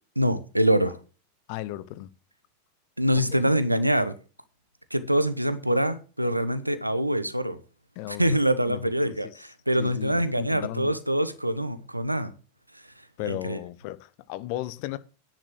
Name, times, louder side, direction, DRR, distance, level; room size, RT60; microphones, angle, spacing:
voice 1, 0.2-1.0 3.0-4.1 4.9-7.6 8.1-12.3 13.2-13.6, equal, 85° right, 1.1 m, -25 dB
voice 2, 1.5-2.1 3.3-3.4 8.0-8.4 8.7-9.3 9.8-11.0 13.2-15.0, left 15 dB, 45° left, 0.8 m, -35 dB
10.0 x 6.4 x 6.2 m
figure-of-eight pair, 90°, 0 cm